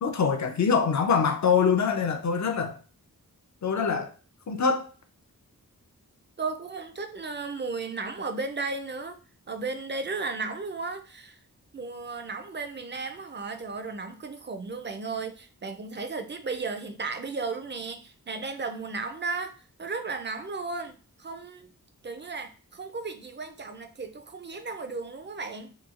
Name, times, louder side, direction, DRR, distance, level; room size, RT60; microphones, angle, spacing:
voice 1, 0.0-2.8 3.6-4.1 4.5-4.9, left 6 dB, 55° left, 0.5 m, -24 dB
voice 2, 6.4-9.2 9.5-11.4 11.7-19.5 19.8-21.7 22.0-25.7, right 4 dB, 35° right, 0.4 m, -35 dB
2.9 x 2.3 x 2.4 m
wide cardioid pair, 75°, 35 cm